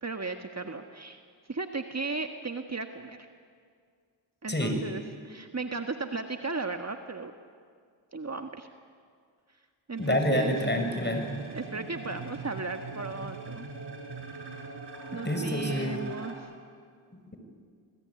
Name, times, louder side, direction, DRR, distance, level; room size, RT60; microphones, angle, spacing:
voice 1, 0.0-1.2 1.5-3.2 4.4-7.3 8.1-8.7 9.9-10.6 11.0-11.1 11.5-13.7 15.1-16.5, right 3 dB, 30° right, 6 dB, 1.7 m, -35 dB
voice 2, 10.0-11.3 15.2-16.0, equal, 20° left, 5 dB, 6.5 m, -27 dB
sound 1, 10.0-16.3, right 3 dB, 55° right, 6.3 m, -41 dB
27.0 x 20.5 x 9.8 m, 2.1 s
cardioid pair, 45°, 49 cm